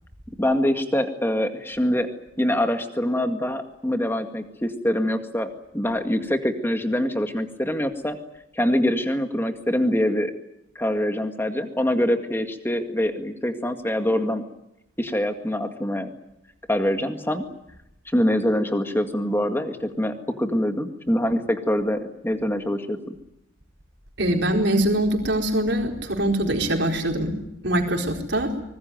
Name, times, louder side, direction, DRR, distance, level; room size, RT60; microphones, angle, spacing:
voice 1, 0.4-2.1 2.4-8.2 8.6-10.3 10.8-14.4 15.0-16.1 16.7-17.4 18.1-23.2, left 1 dB, 10° left, 6 dB, 2.0 m, -24 dB
voice 2, 24.2-27.3 27.6-28.5, right 1 dB, 60° right, 2 dB, 4.4 m, -23 dB
24.5 x 20.5 x 9.3 m, 0.86 s
head